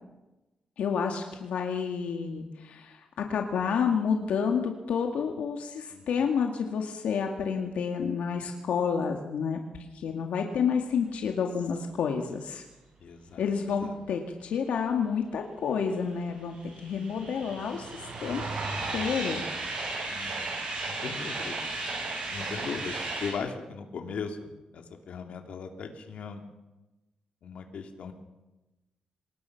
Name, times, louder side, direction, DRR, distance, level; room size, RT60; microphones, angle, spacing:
voice 1, 0.8-9.6 9.9-12.6 13.4-16.6 16.8-17.9 18.2-18.6 18.9-19.4, left 6 dB, 90° left, 3 dB, 2.1 m, -29 dB
voice 2, 5.9-6.3 13.0-14.0 20.1-20.6 20.9-21.6 22.3-26.4 27.4-28.1, left 5 dB, 70° left, 4 dB, 2.8 m, -39 dB
sound 1, 16.2-23.3, right 3 dB, 55° right, 6.4 m, -35 dB
25.5 x 20.0 x 5.9 m, 1.0 s
wide cardioid pair, 145°, 2 cm